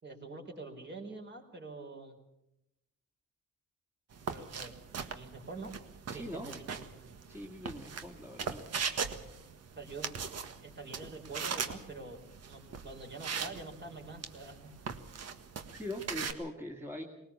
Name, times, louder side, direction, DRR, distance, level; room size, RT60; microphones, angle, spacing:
voice 1, 0.0-2.2 4.3-5.7 6.1-7.1 9.8-10.1 10.6-14.7, right 3 dB, 35° right, 3 dB, 4.6 m, -46 dB
sound 1, 4.1-16.3, right 6 dB, 55° right, 1.6 m, -40 dB
voice 2, 6.1-6.6 7.3-8.6 15.8-17.0, left 1 dB, 10° right, 0 dB, 2.3 m, -42 dB
19.5 x 19.0 x 7.2 m, 0.88 s
cardioid pair, 90°, 30 cm